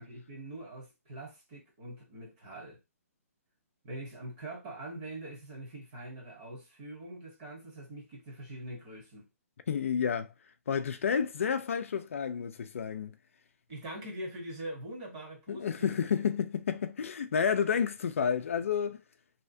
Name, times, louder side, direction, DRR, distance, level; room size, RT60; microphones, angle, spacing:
voice 1, 0.0-2.8 3.8-9.3 13.7-16.0, right 1 dB, 30° right, 1.1 m, -43 dB
voice 2, 9.7-10.3 10.7-13.1 15.5-19.0, left 7 dB, 60° left, 0.4 m, -30 dB
3.2 x 2.8 x 2.6 m
hypercardioid pair, 170°, 8 cm